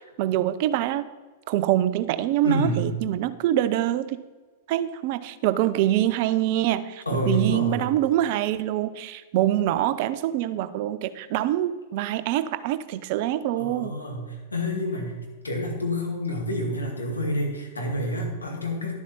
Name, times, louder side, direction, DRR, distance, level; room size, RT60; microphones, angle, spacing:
voice 1, 0.2-1.1 1.5-4.2 4.7-14.0, right 13 dB, 50° right, 14 dB, 0.5 m, -25 dB
voice 2, 2.4-2.9 7.1-7.8 13.5-15.2 15.4-18.9, equal, 85° left, 0 dB, 2.2 m, -28 dB
11.5 x 7.3 x 4.2 m, 1.3 s
figure-of-eight pair, 100°, 0 cm